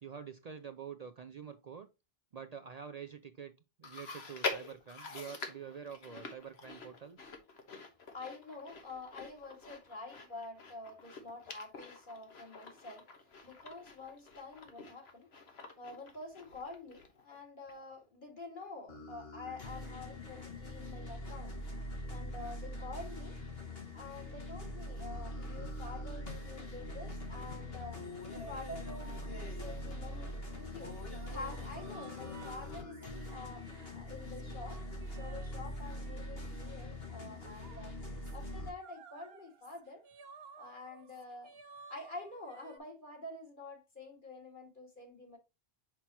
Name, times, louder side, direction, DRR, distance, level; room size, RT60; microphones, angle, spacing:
voice 1, 0.0-1.9 2.3-3.5 3.8-7.3, right 7 dB, 50° right, 0.5 m, -47 dB
Chewing mastication, 3.8-17.4 17.7-17.8 18.6-18.7, left 4 dB, 85° left, 1.5 m, -46 dB
voice 2, 8.1-13.1 13.4-15.3 15.8-21.6 22.1-23.4 23.9-28.0 28.3-30.9 31.3-34.8 35.1-37.9 38.3-40.0 40.6-41.5 41.9-45.4, left 3 dB, 55° left, 2.2 m, -48 dB
sound 1, 18.9-38.7, left 1 dB, 70° left, 1.9 m, -43 dB
sound 2, 30.1-42.8, right 5 dB, 75° right, 1.1 m, -57 dB
6.0 x 5.7 x 2.9 m
omnidirectional pair, 1.0 m